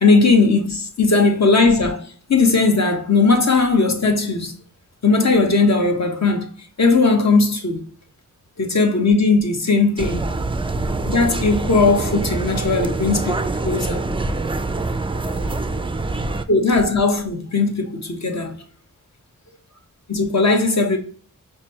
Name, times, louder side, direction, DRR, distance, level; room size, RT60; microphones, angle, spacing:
voice 1, 0.0-4.5 5.0-6.5 6.8-7.9 8.6-10.3 11.0-14.0 16.5-18.6 20.1-21.0, left 3 dB, 50° left, 1.0 m, -18 dB
sound 1, 10.0-16.4, right 3 dB, 15° right, 0.3 m, -25 dB
5.0 x 2.2 x 2.8 m
cardioid pair, 40°, 34 cm